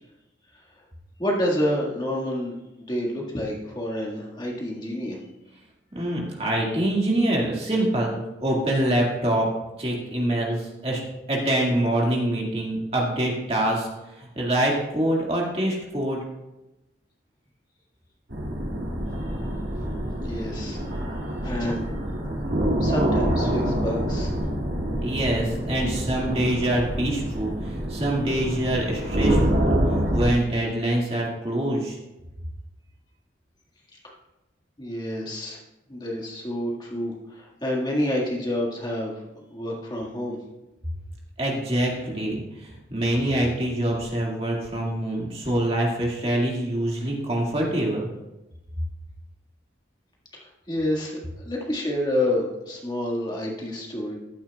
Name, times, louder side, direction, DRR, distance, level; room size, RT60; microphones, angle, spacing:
voice 1, 1.2-5.2 20.1-21.9 22.8-24.4 34.0-34.1 34.8-35.6 35.9-40.4 50.3-54.2, left 1 dB, 20° left, -2 dB, 1.7 m, -29 dB
voice 2, 5.9-9.5 9.8-11.0 11.3-16.2 25.0-32.0 41.4-48.1, right 1 dB, 30° right, -2 dB, 1.9 m, -25 dB
sound 1, 18.3-30.3, equal, 65° right, 2.1 m, -26 dB
14.5 x 8.9 x 2.3 m, 1.0 s
head